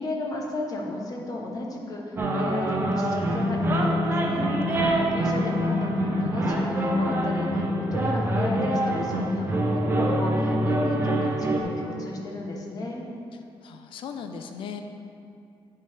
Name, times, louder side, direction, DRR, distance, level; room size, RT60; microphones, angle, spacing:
voice 1, 0.0-4.5 4.8-13.0, left 2 dB, 40° left, -1 dB, 0.9 m, -34 dB
sound 1, 2.2-11.6, equal, 25° right, 0.6 m, -25 dB
voice 2, 4.7-5.3 13.6-14.8, left 6 dB, 60° left, 6 dB, 0.4 m, -38 dB
9.3 x 5.5 x 3.3 m, 2.5 s
wide cardioid pair, 180°, 10 cm